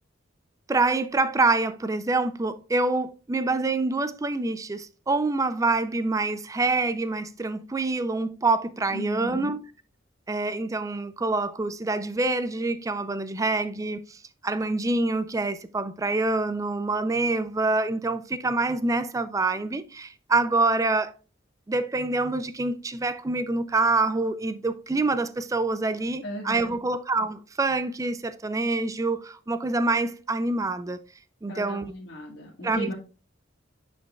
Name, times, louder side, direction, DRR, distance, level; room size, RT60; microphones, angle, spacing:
voice 1, 0.7-9.6 10.3-14.2 14.4-21.1 21.7-31.0 31.4-31.9 32.6-32.9, right 3 dB, 15° right, 0.4 m, -26 dB
voice 2, 8.9-9.6 26.2-26.8 31.5-32.9, equal, 60° left, 1.7 m, -36 dB
9.1 x 5.2 x 2.3 m
head